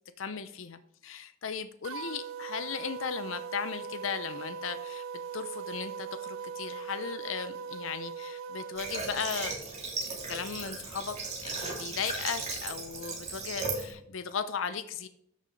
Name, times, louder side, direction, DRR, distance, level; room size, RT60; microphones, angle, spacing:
voice 1, 0.2-5.0 5.3-9.6 10.1-15.1, left 6 dB, 70° left, 11 dB, 0.6 m, -37 dB
sound 1, 1.8-9.0, right 6 dB, 70° right, 0.3 m, -40 dB
Water / Water tap faucet, 8.8-13.9, right 3 dB, 35° right, 3.0 m, -36 dB
13.0 x 6.4 x 3.9 m, 0.72 s
head